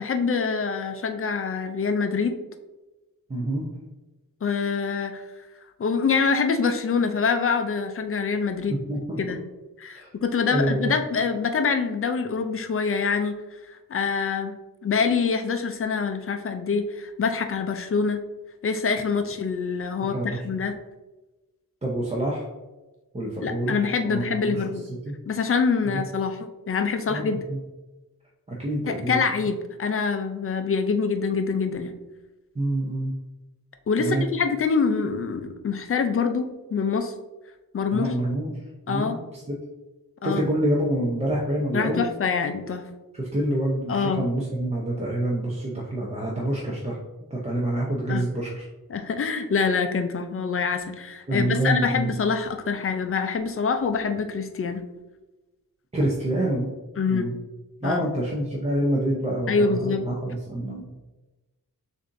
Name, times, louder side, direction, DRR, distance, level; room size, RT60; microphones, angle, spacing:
voice 1, 0.0-2.4 4.4-5.2 5.8-8.8 9.2-9.4 9.8-13.4 13.7-14.6 14.8-18.2 18.6-20.8 23.4-24.9 25.3-27.4 28.9-31.9 33.9-37.1 37.7-38.1 38.9-39.2 40.2-40.4 41.7-42.8 43.9-44.3 48.1-48.2 48.9-54.8 57.0-57.3 57.8-58.1 59.5-60.1, left 5 dB, 40° left, 7 dB, 0.4 m, -25 dB
voice 2, 3.3-3.7 8.7-9.2 9.9-10.1 10.5-10.9 20.1-20.4 21.8-22.5 23.1-23.8 24.0-24.6 25.1-25.2 25.8-26.0 27.1-27.6 28.5-29.2 32.5-33.1 34.0-34.3 37.9-38.5 38.9-39.5 40.2-42.1 43.1-47.0 47.3-48.7 51.3-52.1 55.9-56.7 57.1-57.3 57.8-60.8, right 1 dB, 20° right, -4 dB, 0.6 m, -27 dB
6.5 x 2.6 x 2.6 m, 1.1 s
wide cardioid pair, 155°, 36 cm